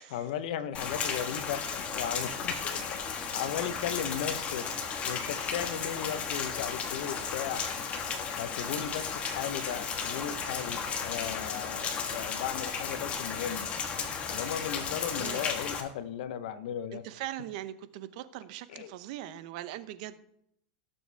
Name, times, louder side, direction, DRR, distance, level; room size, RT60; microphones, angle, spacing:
voice 1, 0.0-7.7 8.4-13.7 14.3-17.0 18.7-18.9, left 9 dB, 70° left, 13 dB, 1.0 m, -36 dB
Rain, 0.7-15.8, left 6 dB, 30° left, 1.6 m, -34 dB
sound 1, 4.2-9.0, left 7 dB, 50° left, 2.0 m, -52 dB
voice 2, 15.2-15.5 16.9-20.3, right 13 dB, 60° right, 13 dB, 0.9 m, -41 dB
17.5 x 7.1 x 3.5 m, 0.74 s
supercardioid pair, 140°, 5 cm